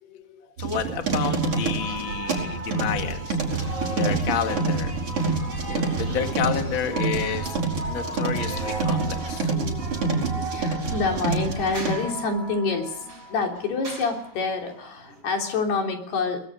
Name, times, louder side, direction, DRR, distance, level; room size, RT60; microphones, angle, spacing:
voice 1, 0.0-0.5 1.8-2.0 5.7-6.2 9.5-16.5, left 4 dB, 85° left, 2 dB, 5.5 m, -28 dB
voice 2, 0.6-4.9 5.7-7.6 7.9-9.5, left 7 dB, 40° left, 5 dB, 2.3 m, -30 dB
sound 1, 0.6-11.9, right 3 dB, 35° right, 5.4 m, -27 dB
sound 2, 0.8-13.3, right 5 dB, 65° right, 4.0 m, -39 dB
sound 3, 1.4-15.2, right 1 dB, 15° right, 5.2 m, -39 dB
24.0 x 20.5 x 6.5 m, 0.63 s
omnidirectional pair, 4.5 m